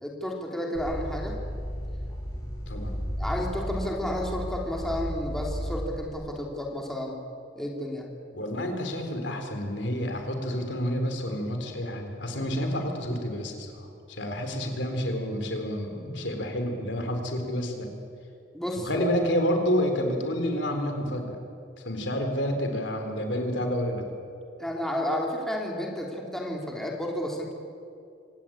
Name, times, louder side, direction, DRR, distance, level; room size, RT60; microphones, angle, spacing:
voice 1, 0.0-1.4 3.2-7.2 7.5-8.1 18.5-19.1 24.6-27.5, left 1 dB, ahead, -1 dB, 3.0 m, -31 dB
sound 1, 0.7-6.1, equal, 20° left, 7.5 m, -34 dB
voice 2, 2.7-3.0 8.3-17.9 18.8-21.4 21.8-24.1, equal, 70° left, 4 dB, 3.9 m, -29 dB
26.0 x 18.5 x 8.8 m, 2.4 s
head